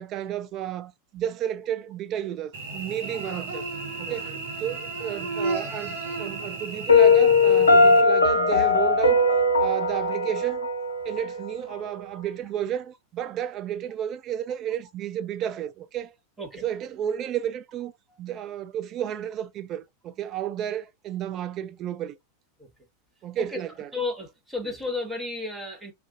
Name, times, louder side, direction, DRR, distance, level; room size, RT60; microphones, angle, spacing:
voice 1, 0.0-3.7 4.0-4.3 4.6-9.3 9.6-10.7 11.1-16.1 16.5-17.9 18.2-22.2 23.2-23.9, right 10 dB, 35° right, 0.3 m, -32 dB
Cricket / Buzz, 2.5-8.0, right 3 dB, 55° right, 0.8 m, -33 dB
Piano, 6.9-11.8, left 3 dB, 75° left, 0.4 m, -19 dB
voice 2, 23.9-25.9, left 3 dB, 10° right, 0.9 m, -32 dB
2.4 x 2.3 x 3.6 m
figure-of-eight pair, 90°, 0 cm